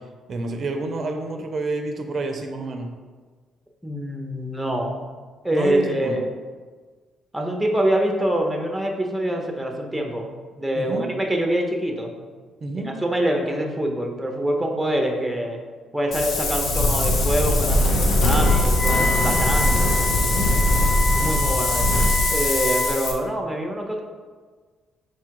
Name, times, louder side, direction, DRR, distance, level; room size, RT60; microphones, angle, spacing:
voice 1, 0.3-2.9 5.5-6.2 10.7-11.0 12.6-12.9 20.2-20.5, right 3 dB, 50° right, 5 dB, 0.4 m, -29 dB
voice 2, 3.8-5.0 5.4-6.3 7.3-10.3 10.6-12.1 12.8-15.6 15.9-19.9 21.1-24.0, right 1 dB, 5° right, 1 dB, 0.6 m, -25 dB
Wind, 16.1-23.1, left 1 dB, 70° left, 0.7 m, -21 dB
Wind instrument woodwind instrument, 18.4-22.9, left 1 dB, 25° left, 0.9 m, -27 dB
4.2 x 2.3 x 4.5 m, 1.5 s
cardioid pair, 90°, 0 cm